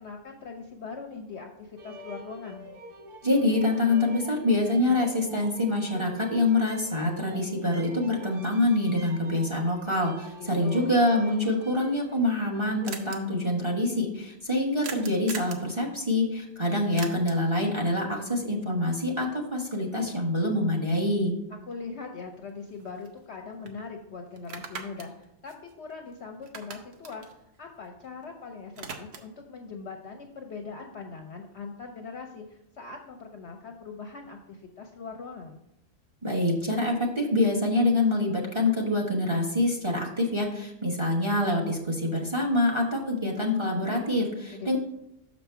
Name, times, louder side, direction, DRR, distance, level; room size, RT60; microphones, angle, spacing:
voice 1, 0.0-2.7 10.4-11.0 21.5-27.2 27.6-35.6 44.5-44.8, left 4 dB, 60° left, 3 dB, 0.8 m, -41 dB
sound 1, 1.8-13.0, right 1 dB, 85° right, 1.5 m, -46 dB
voice 2, 3.2-21.4 36.2-44.8, left 1 dB, 20° right, 0 dB, 0.9 m, -26 dB
sound 2, 12.9-13.2 14.8-15.7 17.0-17.5 21.7-21.8 22.2-23.3 23.7-23.8 24.4-26.1 26.4-28.3 28.5-29.4, right 5 dB, 55° right, 0.9 m, -41 dB
6.5 x 5.2 x 4.5 m, 0.81 s
omnidirectional pair, 1.6 m